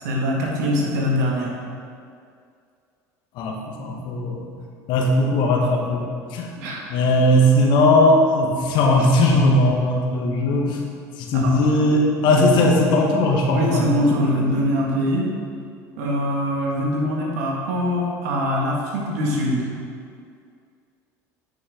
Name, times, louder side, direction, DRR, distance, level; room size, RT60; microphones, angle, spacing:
voice 1, 0.0-1.5 6.6-6.9 11.3-11.9 12.2-12.6 13.5-15.3 16.0-19.7, equal, 80° right, -2 dB, 1.9 m, -23 dB
voice 2, 3.3-4.5 4.9-6.5 6.9-10.8 11.2-13.9 14.3-14.6, left 1 dB, 65° left, 1 dB, 1.4 m, -19 dB
9.5 x 6.3 x 3.7 m, 2.3 s
hypercardioid pair, 85°, 9 cm